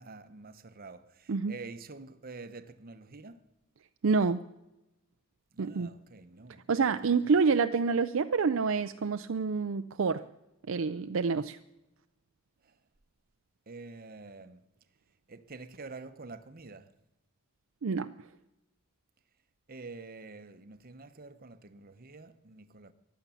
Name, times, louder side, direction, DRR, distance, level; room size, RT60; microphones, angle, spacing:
voice 1, 0.0-3.4 5.5-7.4 12.6-12.8 13.7-14.6 15.3-16.9 19.7-22.9, right 3 dB, 40° right, 0.9 m, -47 dB
voice 2, 4.0-4.4 5.6-5.9 6.7-10.2 10.7-11.6 17.8-18.1, right 5 dB, 60° right, 0.4 m, -27 dB
15.0 x 11.0 x 7.0 m
head